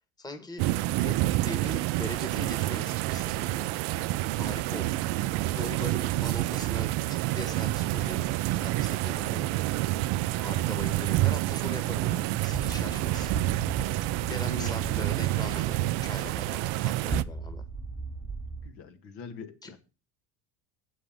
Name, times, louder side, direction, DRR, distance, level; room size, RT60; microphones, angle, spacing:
voice 1, 0.2-0.6 1.0-1.2 1.4-3.7 4.3-5.1 5.5-9.6 10.4-13.3 14.3-17.6 19.6-19.8, left 2 dB, 10° left, 8 dB, 1.5 m, -41 dB
sound 1, 0.6-17.2, right 16 dB, 60° right, 0.6 m, -28 dB
voice 2, 9.1-9.5 14.4-15.1 18.6-19.8, left 5 dB, 65° left, 6 dB, 2.0 m, -45 dB
sound 2, 17.1-18.7, right 3 dB, 10° right, 0.9 m, -38 dB
7.7 x 6.3 x 7.7 m, 0.32 s
supercardioid pair, 90°, 44 cm